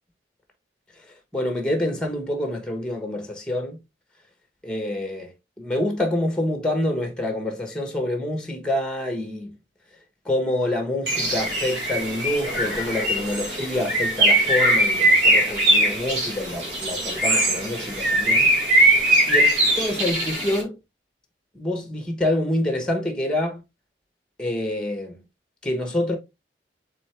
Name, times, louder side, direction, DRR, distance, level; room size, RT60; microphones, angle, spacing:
voice 1, 1.3-3.8 4.6-5.3 5.6-9.5 10.3-18.5 19.3-20.8 21.5-23.6 24.4-25.1 25.6-26.2, left 1 dB, 5° left, 1.0 m, -27 dB
Bird, 11.1-20.6, right 1 dB, 70° right, 1.7 m, -21 dB
4.3 x 3.7 x 3.2 m
head